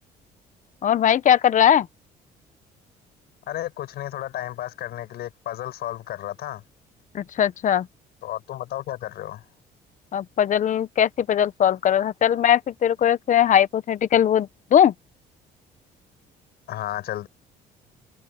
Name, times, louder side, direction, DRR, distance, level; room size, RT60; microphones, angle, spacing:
voice 1, 0.8-1.9 7.1-7.9 10.1-14.9, left 9 dB, 50° left, 1.0 m, -20 dB
voice 2, 3.5-6.6 8.2-9.4 16.7-17.3, left 13 dB, 70° left, 6.1 m, -32 dB
cardioid pair, 110°, 17 cm